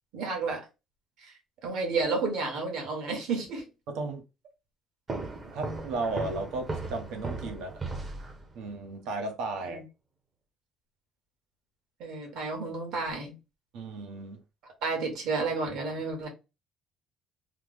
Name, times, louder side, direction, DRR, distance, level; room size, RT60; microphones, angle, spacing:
voice 1, 0.1-0.6 1.2-1.3 1.6-3.6 9.6-9.8 12.0-13.3 14.6-16.3, right 4 dB, 70° right, 1.3 m, -31 dB
voice 2, 3.9-4.2 5.5-7.7 8.5-9.8 13.7-14.4, right 2 dB, 85° right, 0.9 m, -34 dB
sound 1, 5.1-8.8, right 3 dB, 25° right, 0.6 m, -37 dB
3.1 x 2.0 x 3.4 m
cardioid pair, 175°, 0 cm